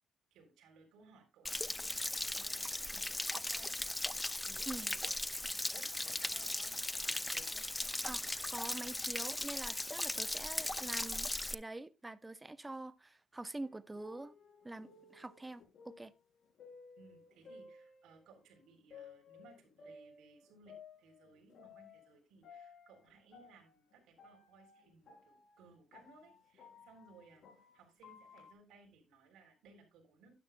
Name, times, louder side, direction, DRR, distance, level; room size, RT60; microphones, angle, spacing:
voice 1, 0.3-7.6 17.0-27.5 27.7-30.3, right 4 dB, 90° right, 3.7 m, -62 dB
Stream / Splash splatter / Trickle dribble, 1.4-11.5, left 1 dB, 10° left, 0.4 m, -38 dB
voice 2, 8.5-14.3 14.6-16.1, right 2 dB, 15° right, 0.7 m, -46 dB
sound 1, 13.6-18.4 18.9-22.2 22.4-28.5, left 5 dB, 65° left, 3.6 m, -58 dB
12.0 x 10.0 x 2.3 m
cardioid pair, 90°, 0 cm